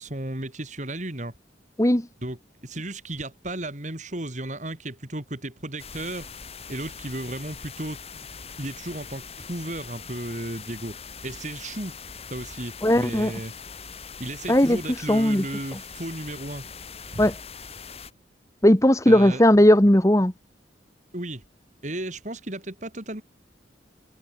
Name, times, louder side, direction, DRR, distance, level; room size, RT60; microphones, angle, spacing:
voice 1, 0.0-1.3 2.2-6.3 6.7-8.2 8.6-11.0 11.2-12.0 12.3-13.5 14.2-16.6 17.1-17.3 19.1-19.4 21.1-21.4 21.8-23.2, right 1 dB, 40° right, 3.2 m, -34 dB
sound 1, 5.8-18.1, left 6 dB, 35° left, 5.2 m, -42 dB
voice 2, 12.8-13.3 14.5-14.8 15.1-15.4 17.2-17.3 18.6-20.3, left 1 dB, 15° left, 1.3 m, -17 dB
head